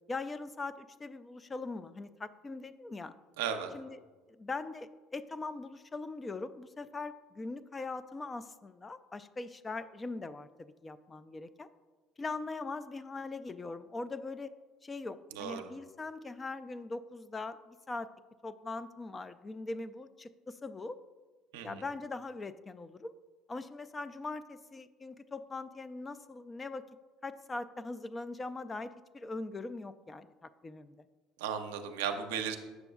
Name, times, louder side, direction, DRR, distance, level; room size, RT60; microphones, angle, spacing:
voice 1, 0.1-3.1 3.7-4.0 4.3-11.7 12.2-14.5 14.8-18.1 18.4-21.0 21.6-23.1 23.5-26.8 27.2-31.1, left 3 dB, 25° left, 13 dB, 0.3 m, -41 dB
voice 2, 3.4-3.7 15.3-15.7 21.5-21.8 31.4-32.6, right 7 dB, 80° right, 6 dB, 0.5 m, -35 dB
7.9 x 6.0 x 2.3 m, 1.3 s
hypercardioid pair, 70°, 0 cm